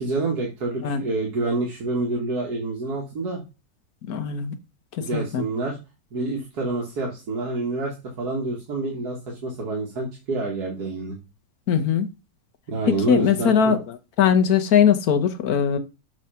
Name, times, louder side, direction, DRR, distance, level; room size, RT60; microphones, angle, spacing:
voice 1, 0.0-3.4 5.0-5.8 6.1-11.2 12.7-13.7, right 2 dB, 80° right, 2.0 m, -27 dB
voice 2, 4.1-4.5 5.1-5.4 11.7-12.1 12.9-13.8 14.2-15.8, left 8 dB, 75° left, 1.4 m, -20 dB
7.4 x 3.2 x 5.5 m
omnidirectional pair, 1.6 m